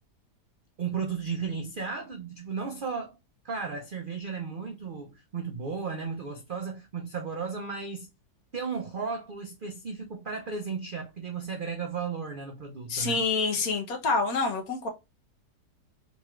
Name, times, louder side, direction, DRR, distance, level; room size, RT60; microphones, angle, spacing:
voice 1, 0.8-3.2 3.4-8.1 8.5-13.2, right 5 dB, 80° right, 0.4 m, -34 dB
voice 2, 12.9-14.9, left 4 dB, 65° left, 1.4 m, -27 dB
3.8 x 3.1 x 2.3 m
omnidirectional pair, 1.7 m